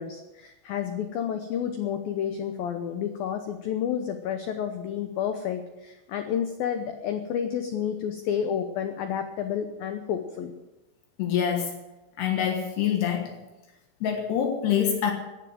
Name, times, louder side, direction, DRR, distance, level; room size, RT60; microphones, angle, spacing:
voice 1, 0.0-10.5, left 8 dB, 85° left, 7 dB, 2.0 m, -30 dB
voice 2, 11.2-11.8 12.2-13.3 14.0-15.1, left 8 dB, 70° left, 3 dB, 3.3 m, -25 dB
15.5 x 10.5 x 7.8 m, 1.0 s
omnidirectional pair, 5.5 m